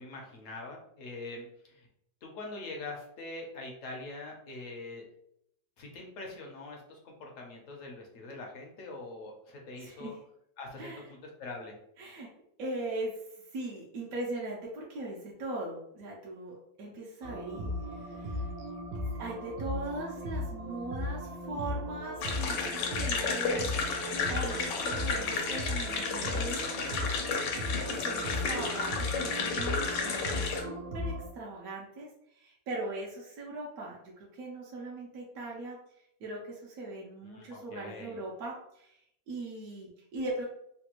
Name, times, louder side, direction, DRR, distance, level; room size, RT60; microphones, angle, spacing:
voice 1, 0.0-1.9 2.2-5.1 5.8-10.1 10.6-11.7 26.8-27.1 37.2-38.2, left 2 dB, 65° left, 1 dB, 0.9 m, -44 dB
voice 2, 9.8-10.2 10.8-11.0 12.0-12.3 12.6-13.2 13.5-18.5 19.2-23.9 24.3-26.6 27.1-40.4, right 2 dB, 65° right, -4 dB, 1.0 m, -40 dB
sound 1, 17.2-31.3, left 1 dB, 90° right, 1.2 m, -37 dB
sound 2, 22.2-30.6, left 4 dB, 85° left, 1.3 m, -32 dB
3.3 x 2.2 x 2.9 m, 0.74 s
omnidirectional pair, 1.8 m